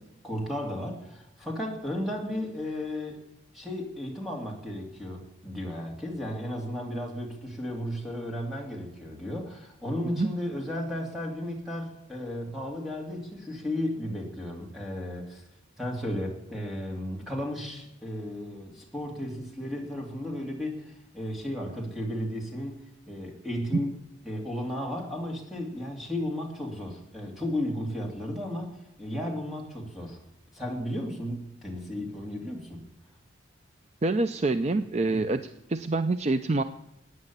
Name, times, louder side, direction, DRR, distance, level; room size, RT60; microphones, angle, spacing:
voice 1, 0.2-3.2 3.5-15.5 15.8-23.9 24.2-30.2 30.5-32.8 35.1-35.2, left 1 dB, ahead, -1 dB, 2.8 m, -34 dB
voice 2, 34.0-35.4 35.7-36.6, right 2 dB, 30° right, 10 dB, 0.5 m, -26 dB
15.5 x 9.5 x 7.3 m, 0.89 s
head